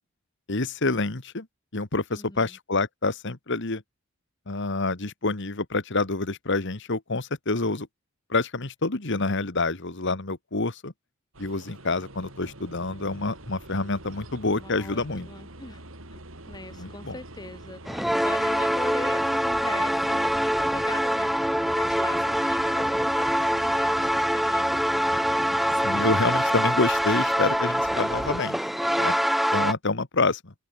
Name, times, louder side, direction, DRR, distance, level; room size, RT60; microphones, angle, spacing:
voice 1, 0.5-1.5 1.7-3.8 4.5-7.9 8.3-10.9 11.4-15.3 16.8-17.2 25.8-28.6 29.0-29.2 29.5-30.5, left 3 dB, 60° left, 1.8 m, -27 dB
voice 2, 2.1-2.6 14.4-15.0 15.3-15.8 16.1-24.7, left 2 dB, 20° left, 1.9 m, -40 dB
sound 1, 11.3-28.4, right 1 dB, 70° right, 5.0 m, -45 dB
sound 2, 17.9-29.7, equal, ahead, 0.8 m, -24 dB
open air
head